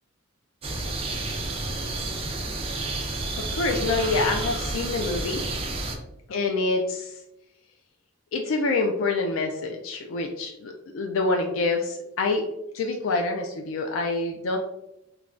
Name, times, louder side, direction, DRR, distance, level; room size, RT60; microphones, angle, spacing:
sound 1, 0.6-6.0, right 2 dB, 30° right, 0.4 m, -30 dB
voice 1, 3.4-5.4 6.3-7.2 8.3-12.4 12.7-14.6, left 3 dB, 75° left, 2 dB, 0.3 m, -26 dB
3.2 x 2.2 x 2.4 m, 0.87 s
head